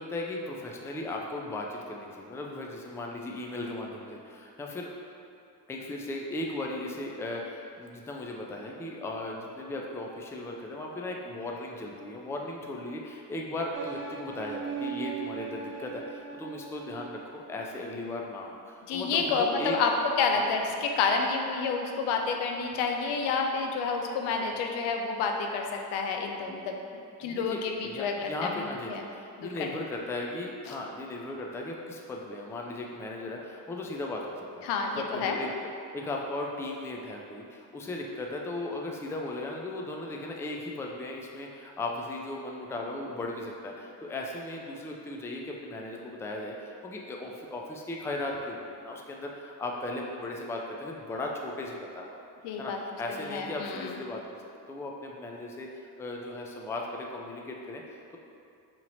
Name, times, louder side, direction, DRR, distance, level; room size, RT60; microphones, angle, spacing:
voice 1, 0.0-4.9 5.7-19.8 27.2-35.5 35.9-52.2 52.6-54.2 54.7-55.7 56.0-58.2, left 2 dB, 5° left, 0 dB, 0.3 m, -37 dB
sound 1, 13.7-17.6, right 6 dB, 30° right, 0.7 m, -39 dB
voice 2, 18.9-19.9 20.2-26.8 27.2-28.5 28.9-29.0 29.4-29.7 30.7-30.8 34.6-35.4 52.4-52.8 53.1-53.9, left 5 dB, 80° left, 3 dB, 0.5 m, -29 dB
2.9 x 2.8 x 4.0 m, 2.5 s
supercardioid pair, 75°, 40 cm